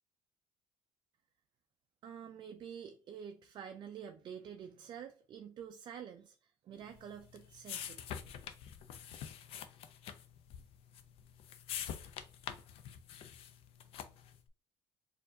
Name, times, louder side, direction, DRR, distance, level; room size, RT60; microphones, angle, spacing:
voice 1, 2.0-8.2, right 8 dB, 45° right, 0.4 m, -48 dB
sound 1, 6.9-14.4, left 9 dB, 65° left, 0.5 m, -46 dB
4.4 x 2.5 x 2.6 m
supercardioid pair, 95°, 10 cm